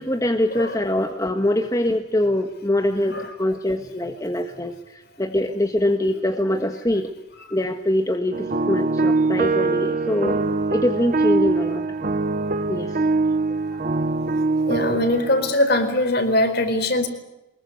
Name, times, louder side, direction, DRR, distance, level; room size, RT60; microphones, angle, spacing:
voice 1, 0.0-7.1 7.5-10.4 10.7-11.8 12.7-13.0, left 1 dB, 15° left, 5 dB, 1.4 m, -23 dB
sound 1, 8.3-15.5, right 3 dB, 40° right, 0.9 m, -23 dB
voice 2, 14.7-17.1, left 1 dB, 50° left, 8 dB, 4.5 m, -21 dB
24.5 x 21.5 x 8.3 m, 0.94 s
head